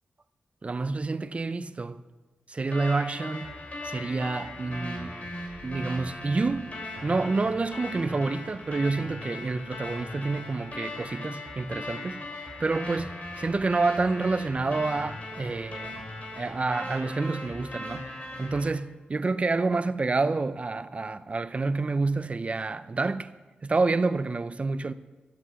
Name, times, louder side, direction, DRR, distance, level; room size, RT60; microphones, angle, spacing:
voice 1, 0.6-2.0 2.5-3.5 3.8-5.2 5.6-12.2 12.6-16.0 16.4-18.1 18.4-23.3 23.6-24.9, right 3 dB, 35° right, 0.6 m, -28 dB
sound 1, 2.7-18.7, left 1 dB, 45° left, 4.1 m, -38 dB
13.5 x 7.9 x 7.6 m
cardioid pair, 80°, 3 cm